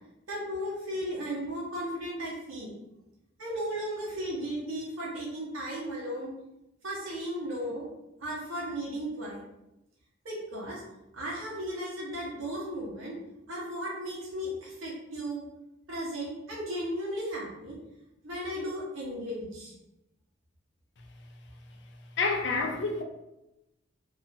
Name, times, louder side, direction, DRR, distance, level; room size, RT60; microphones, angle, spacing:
voice 1, 0.3-2.7 3.4-6.3 6.8-7.9 8.2-9.4 10.2-10.8 11.1-13.2 13.5-15.4 15.9-17.8 18.2-19.7, equal, 90° right, 1.0 m, -35 dB
voice 2, 22.2-23.0, left 3 dB, 60° left, 0.4 m, -28 dB
2.7 x 2.4 x 2.7 m
head